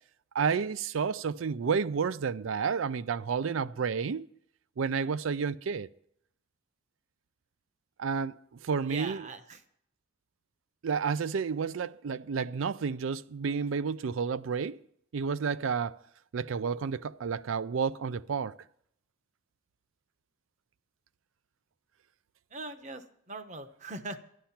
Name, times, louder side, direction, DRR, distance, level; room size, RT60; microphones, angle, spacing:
voice 1, 0.3-4.3 4.8-5.9 8.0-8.4 8.6-9.2 10.8-14.8 15.1-16.0 16.3-18.6, right 6 dB, 85° right, 0.4 m, -30 dB
voice 2, 8.9-9.6 22.5-24.2, right 2 dB, 35° right, 0.9 m, -41 dB
12.0 x 11.5 x 5.8 m
head